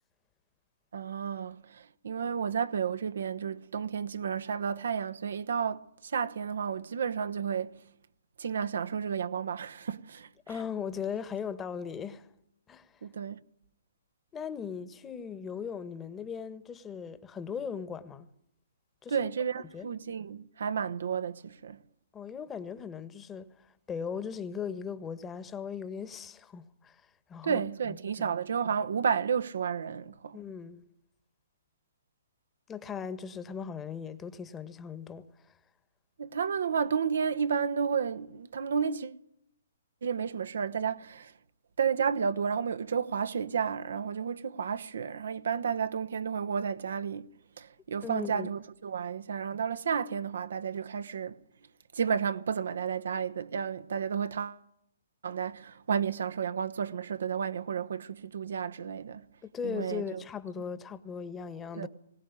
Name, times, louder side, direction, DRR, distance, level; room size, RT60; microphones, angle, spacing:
voice 1, 0.9-7.7 8.4-10.3 13.0-13.4 19.1-21.8 27.4-30.4 36.2-39.2 40.0-41.3 41.8-47.3 47.6-51.4 51.9-54.6 55.2-59.3 59.6-60.2 61.8-61.9, right 7 dB, 70° right, 1.0 m, -32 dB
voice 2, 10.5-12.3 12.7-12.9 14.3-18.3 19.0-19.3 19.7-19.9 22.1-27.0 27.3-27.6 27.9-28.3 30.3-30.8 32.7-35.2 48.0-48.5 59.5-61.9, left 7 dB, 15° left, 1.5 m, -38 dB
21.5 x 18.0 x 9.8 m
hypercardioid pair, 135°, 0 cm